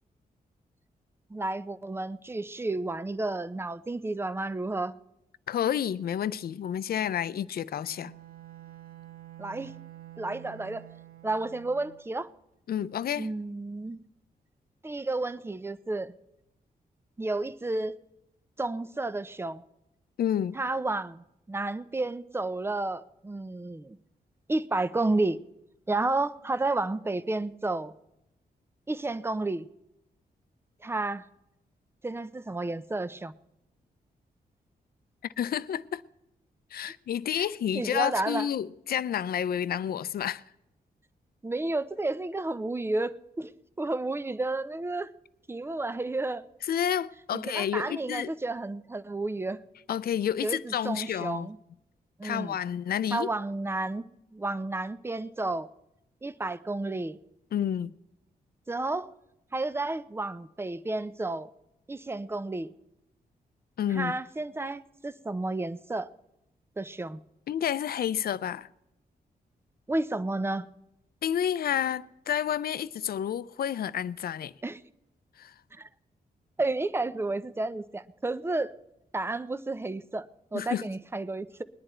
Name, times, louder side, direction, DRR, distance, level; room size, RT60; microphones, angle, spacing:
voice 1, 1.3-5.0 9.4-9.7 10.2-10.8 11.2-12.3 13.1-14.0 14.8-16.1 17.2-18.0 18.6-19.6 20.5-24.0 24.5-25.4 25.9-27.9 28.9-29.7 30.8-31.3 32.0-33.3 36.8-36.9 37.4-37.5 37.7-38.5 41.4-43.5 43.8-45.1 45.5-46.4 47.3-49.6 50.4-51.6 52.2-52.6 53.1-54.1 54.3-55.7 56.2-57.2 58.7-59.1 59.5-61.5 61.9-62.7 63.9-66.1 66.8-67.2 69.9-70.7 74.6-74.8 75.7-75.9 76.6-78.7 79.1-81.6, right 2 dB, 15° right, 0.6 m, -31 dB
voice 2, 5.5-8.1 12.7-13.3 20.2-20.6 35.4-36.0 36.7-40.4 46.7-48.3 49.9-51.5 52.2-53.3 57.5-57.9 63.8-64.1 67.5-68.7 71.2-74.5 75.4-75.5 80.5-80.9, left 9 dB, 75° left, 0.5 m, -30 dB
Bowed string instrument, 7.9-12.2, right 14 dB, 65° right, 0.9 m, -48 dB
20.5 x 10.5 x 4.4 m
cardioid pair, 100°, 16 cm